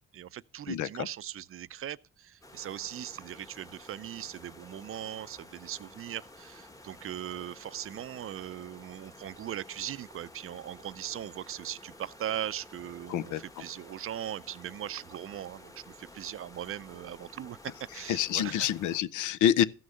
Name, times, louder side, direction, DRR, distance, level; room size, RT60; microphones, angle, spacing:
voice 1, 0.1-13.3 13.6-18.7, right 11 dB, 45° right, 0.5 m, -39 dB
voice 2, 0.7-1.1 13.1-13.4 18.1-19.6, left 10 dB, 80° left, 0.6 m, -27 dB
sound 1, 2.4-19.0, left 1 dB, 10° left, 1.1 m, -52 dB
14.0 x 6.3 x 5.5 m
cardioid pair, 90°, 30 cm